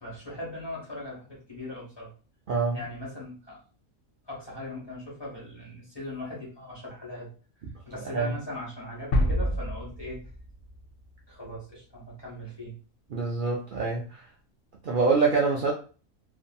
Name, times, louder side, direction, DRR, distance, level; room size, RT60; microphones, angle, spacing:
voice 1, 0.0-2.1 2.7-3.6 4.3-7.3 7.8-10.2 11.3-12.8, left 1 dB, 20° left, -5 dB, 0.9 m, -39 dB
voice 2, 2.5-2.8 8.1-8.3 13.1-14.2 14.8-15.7, right 4 dB, 90° right, -2 dB, 0.4 m, -25 dB
sound 1, 9.1-11.0, equal, 65° left, 0.6 m, -27 dB
2.6 x 2.6 x 2.2 m, 0.37 s
omnidirectional pair, 1.4 m